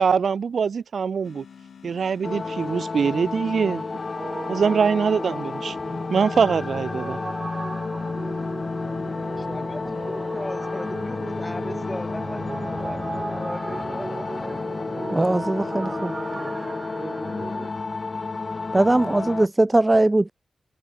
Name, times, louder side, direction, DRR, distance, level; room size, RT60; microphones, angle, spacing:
voice 1, 0.0-1.4 1.8-3.8 4.5-5.8 6.1-7.2, right 6 dB, 75° right, 1.3 m, -23 dB
sound 1, 1.2-16.7, left 7 dB, 85° left, 4.5 m, -51 dB
sound 2, 2.2-19.5, left 3 dB, 45° left, 1.1 m, -31 dB
sound 3, 4.2-17.7, right 3 dB, 40° right, 1.0 m, -36 dB
voice 2, 9.4-13.0 13.3-14.3, left 1 dB, 15° left, 2.4 m, -37 dB
voice 3, 15.1-16.2 18.7-20.3, right 2 dB, 25° right, 0.4 m, -20 dB
cardioid pair, 55°, 0 cm